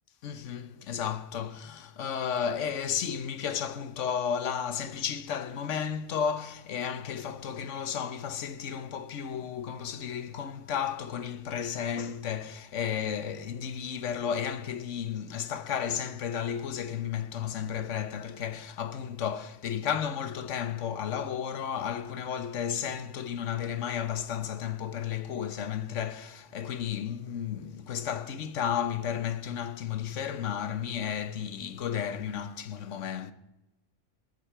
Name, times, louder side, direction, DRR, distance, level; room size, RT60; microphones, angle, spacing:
voice 1, 0.2-33.3, left 8 dB, 75° left, 1.2 m, -33 dB
20.0 x 8.2 x 6.8 m
omnidirectional pair, 1.3 m